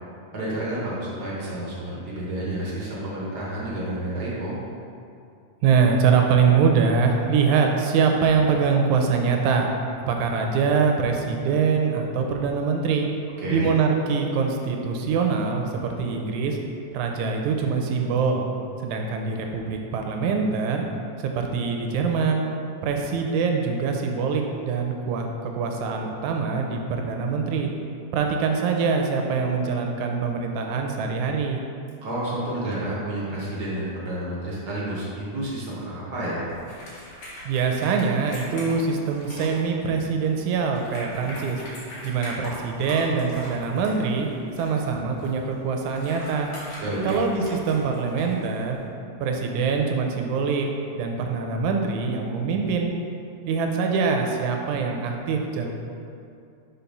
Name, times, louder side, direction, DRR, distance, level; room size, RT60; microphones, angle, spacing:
voice 1, 0.3-4.5 13.4-13.7 32.0-36.4 46.8-47.1, right 1 dB, 55° right, -6 dB, 1.1 m, -30 dB
voice 2, 5.6-9.7 10.1-13.1 13.5-16.6 16.9-18.4 18.8-20.8 21.2-22.4 22.8-27.7 28.1-31.6 37.5-41.6 42.0-44.3 44.6-46.5 47.0-48.8 49.2-50.7 51.0-52.9 53.5-55.7, right 5 dB, 75° right, 2 dB, 1.9 m, -23 dB
sound 1, 36.5-48.8, equal, 65° left, 3.0 m, -41 dB
5.8 x 4.4 x 5.3 m, 2.5 s
omnidirectional pair, 3.6 m